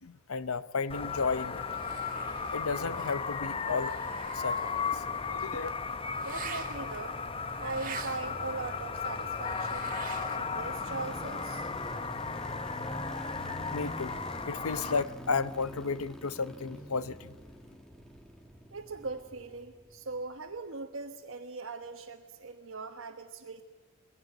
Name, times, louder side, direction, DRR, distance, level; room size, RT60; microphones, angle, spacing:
voice 1, 0.0-1.7 2.5-4.0 4.3-5.7 13.7-14.2 14.5-17.4, left 4 dB, 80° left, 15 dB, 0.8 m, -33 dB
sound 1, 0.9-15.0, left 5 dB, 25° left, 0.7 m, -35 dB
sound 2, 1.1-10.7 10.9-13.4, right 6 dB, 40° right, 2.0 m, -48 dB
sound 3, 5.0-20.1 20.4-20.5, equal, 5° left, 1.5 m, -46 dB
voice 2, 6.2-7.2 7.6-9.9 10.3-11.7 18.7-23.6, right 3 dB, 65° right, 2 dB, 1.3 m, -40 dB
21.5 x 16.5 x 9.2 m, 1.5 s
head